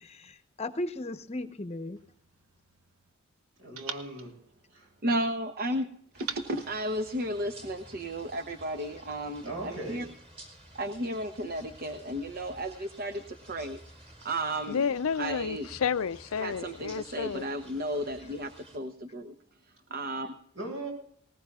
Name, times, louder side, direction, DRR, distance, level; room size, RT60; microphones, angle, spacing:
voice 1, 0.0-2.0, left 1 dB, 30° left, 0.9 m, -36 dB
sound 1, 2.0-3.2 3.8-5.4 6.2-7.8, right 7 dB, 90° right, 1.1 m, -45 dB
voice 2, 3.6-4.3 4.7-4.9 9.4-10.0 20.5-20.9, right 2 dB, 65° right, 7.5 m, -38 dB
voice 3, 5.0-5.9 6.3-10.0 10.7-13.8 14.2-14.8 15.2-15.7 16.4-19.3 19.9-20.3, right 1 dB, 45° right, 0.8 m, -33 dB
sound 2, 6.1-18.8, right 1 dB, 25° right, 4.2 m, -52 dB
voice 4, 14.7-17.5, left 6 dB, 85° left, 0.5 m, -31 dB
20.0 x 19.5 x 2.4 m
head